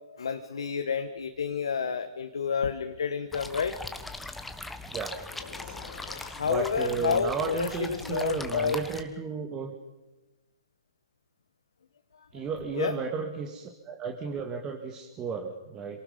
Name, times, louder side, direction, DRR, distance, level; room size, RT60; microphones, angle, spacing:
voice 1, 0.0-3.7 6.4-8.8 12.3-12.4 12.7-13.0, left 6 dB, 75° left, 7 dB, 1.2 m, -30 dB
sound 1, 3.3-9.0, left 2 dB, 5° left, 1.4 m, -40 dB
sound 2, 5.3-6.6, left 7 dB, 60° left, 4.0 m, -46 dB
voice 2, 6.5-9.7 12.3-16.0, right 5 dB, 25° right, 3 dB, 1.9 m, -33 dB
27.0 x 18.5 x 5.2 m, 1.1 s
hypercardioid pair, 125°, 3 cm